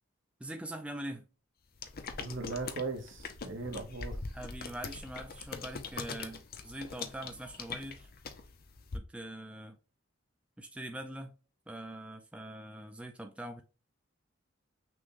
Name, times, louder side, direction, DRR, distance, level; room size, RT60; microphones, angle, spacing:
voice 1, 0.4-1.3 4.3-8.1 8.9-9.8 10.6-11.3 11.7-13.6, right 1 dB, 5° right, 0.4 m, -43 dB
sound 1, 1.8-9.0, left 4 dB, 50° left, 0.6 m, -42 dB
voice 2, 2.2-4.2, right 3 dB, 65° right, 0.9 m, -38 dB
6.1 x 2.2 x 3.7 m
head